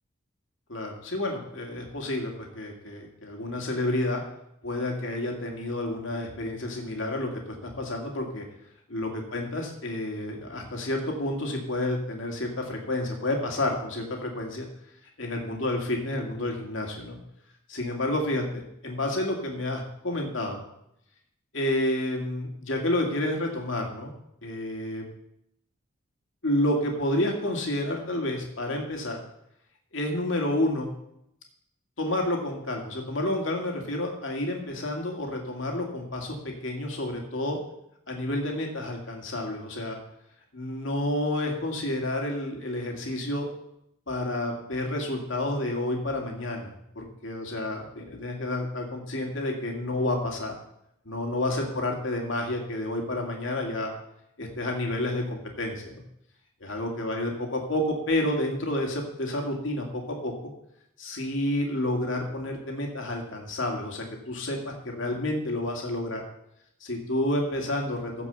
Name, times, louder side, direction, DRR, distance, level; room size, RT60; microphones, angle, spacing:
voice 1, 0.7-4.2 4.6-8.5 8.9-14.7 15.2-17.2 17.7-20.6 21.5-24.1 24.4-25.0 26.4-29.2 29.9-30.9 32.0-37.6 38.1-40.0 40.5-43.5 44.1-50.5 51.1-53.9 54.4-56.0 56.6-60.5 61.0-66.2 66.8-68.3, left 1 dB, 65° left, 1 dB, 2.2 m, -30 dB
15.0 x 5.3 x 6.9 m, 0.78 s
head